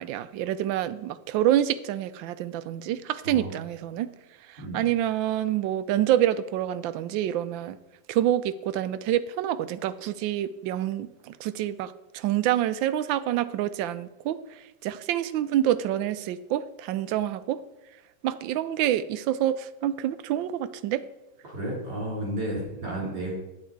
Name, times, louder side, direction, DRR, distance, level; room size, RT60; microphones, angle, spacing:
voice 1, 0.0-4.1 4.5-7.8 8.1-11.1 11.4-14.4 14.8-17.6 18.2-21.0, right 12 dB, 80° right, 13 dB, 1.3 m, -27 dB
voice 2, 21.4-23.3, right 1 dB, 55° right, -3 dB, 3.8 m, -32 dB
9.0 x 8.2 x 4.5 m, 0.97 s
omnidirectional pair, 2.1 m